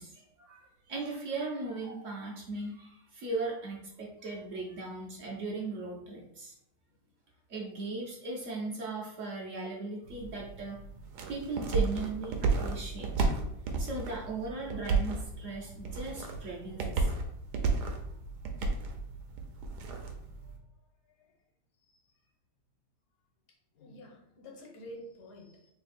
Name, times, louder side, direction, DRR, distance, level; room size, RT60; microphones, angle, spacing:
voice 1, 0.0-6.5 7.5-10.8 11.3-13.3 13.8-17.1 17.7-17.8, right 3 dB, 60° right, -2 dB, 0.9 m, -38 dB
sound 1, 10.0-20.6, right 4 dB, 75° right, 1.2 m, -33 dB
voice 2, 23.7-25.7, equal, 75° left, 0 dB, 1.5 m, -48 dB
3.3 x 2.8 x 4.2 m, 0.75 s
omnidirectional pair, 1.8 m